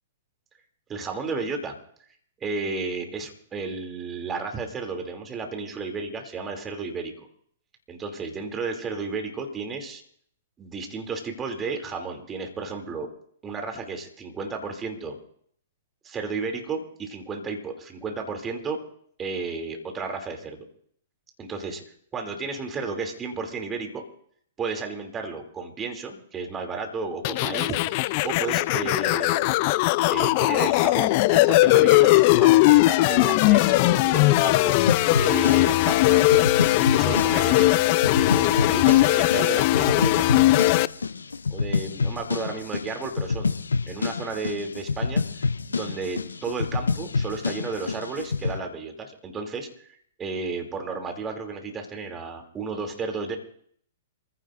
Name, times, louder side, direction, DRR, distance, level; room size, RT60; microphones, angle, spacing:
voice 1, 0.9-1.8 2.4-7.3 7.9-10.0 10.6-13.1 13.4-15.2 16.0-18.8 19.2-20.7 21.4-21.8 22.1-24.0 24.6-27.8 28.2-29.6 30.1-36.4 36.8-40.3 41.5-43.5 43.9-45.2 45.7-49.9 50.2-53.4, right 4 dB, 20° right, 3 dB, 2.8 m, -33 dB
sound 1, 27.2-40.9, left 19 dB, 45° left, 0.5 m, -19 dB
sound 2, 34.9-48.6, left 4 dB, 85° left, 0.6 m, -28 dB
27.5 x 15.5 x 2.6 m, 0.64 s
hypercardioid pair, 120°, 0 cm